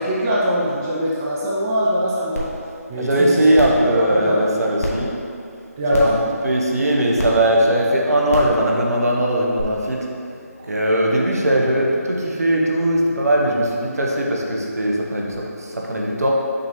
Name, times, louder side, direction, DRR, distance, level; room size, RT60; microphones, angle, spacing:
voice 1, 0.0-2.5 2.9-3.5 3.9-4.4 5.8-6.1, equal, 10° right, -6 dB, 0.4 m, -22 dB
sound 1, 2.4-2.5 2.9-3.0 3.5-3.8 4.8-4.9 5.9-6.2 7.2-7.3 8.3-8.5 9.6-9.7, equal, 60° left, 1.3 m, -25 dB
voice 2, 3.0-5.1 5.9-6.2 6.4-10.0 10.7-16.3, right 1 dB, 70° right, -1 dB, 1.1 m, -19 dB
6.4 x 3.0 x 5.1 m, 2.4 s
figure-of-eight pair, 160°, 9 cm